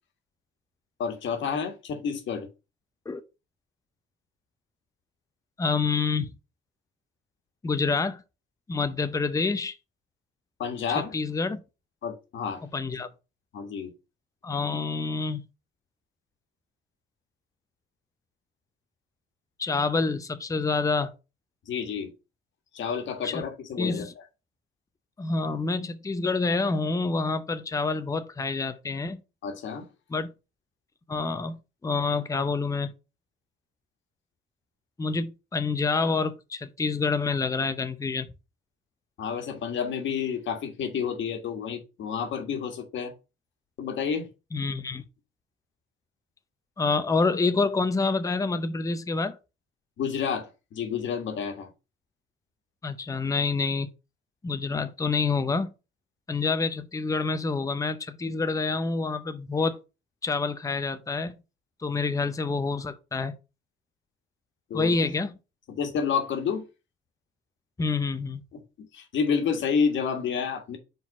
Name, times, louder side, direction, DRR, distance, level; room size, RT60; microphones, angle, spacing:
voice 1, 1.0-2.5 10.6-11.2 12.0-12.6 13.5-13.9 21.7-22.1 22.7-24.1 29.4-29.9 39.2-43.1 43.8-44.3 50.0-51.7 64.7-65.1 65.7-66.6 68.5-70.8, left 6 dB, 70° left, 1.6 m, -30 dB
voice 2, 5.6-6.3 7.6-8.2 8.7-9.7 10.9-11.6 12.7-13.1 14.4-15.4 19.6-21.1 23.2-23.4 23.8-24.1 25.2-29.2 30.1-30.3 31.1-31.6 31.8-32.9 35.0-38.3 44.5-45.0 46.8-49.4 52.8-53.9 54.4-55.7 56.3-59.8 60.2-61.4 61.8-63.3 64.7-65.3 67.8-68.4, left 4 dB, 15° left, 0.6 m, -27 dB
4.9 x 3.8 x 5.3 m
cardioid pair, 90°, 20 cm